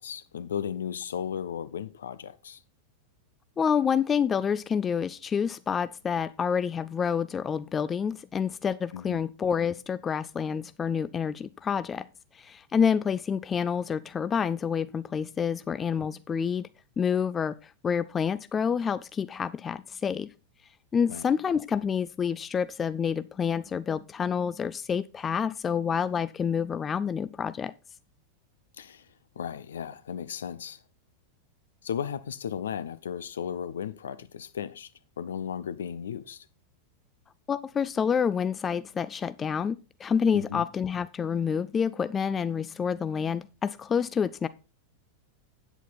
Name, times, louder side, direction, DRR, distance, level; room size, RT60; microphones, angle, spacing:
voice 1, 0.0-2.6 8.9-9.2 21.1-21.2 28.8-29.0 29.4-30.8 31.8-34.9 35.2-36.4 40.3-40.7, left 8 dB, 65° left, 0.6 m, -35 dB
voice 2, 3.6-12.1 12.3-16.7 17.0-20.3 20.9-27.7 37.5-44.5, left 7 dB, 20° left, 0.4 m, -28 dB
9.0 x 8.1 x 4.1 m
figure-of-eight pair, 90°, 0 cm